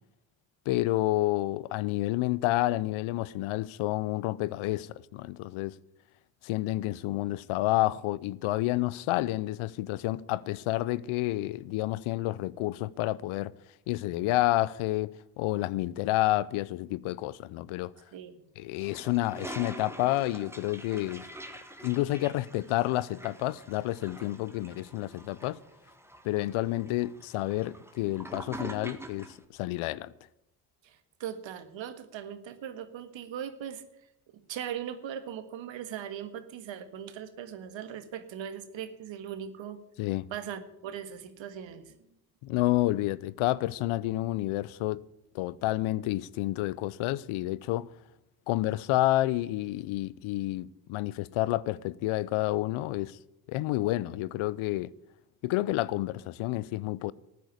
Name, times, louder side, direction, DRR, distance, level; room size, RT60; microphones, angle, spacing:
voice 1, 0.7-5.7 6.4-13.5 13.9-17.9 18.6-21.3 21.8-25.6 26.2-30.1 40.0-40.3 42.4-45.0 45.3-47.9 48.5-53.2 53.5-54.9 55.4-57.1, left 17 dB, 75° left, 0.7 m, -29 dB
voice 2, 18.1-18.4 30.8-33.8 34.5-39.8 40.3-41.9 53.6-53.8, right 9 dB, 65° right, 1.8 m, -39 dB
Toilet flush, 18.8-29.4, right 1 dB, 5° right, 1.9 m, -45 dB
14.0 x 9.4 x 8.3 m
supercardioid pair, 65°, 50 cm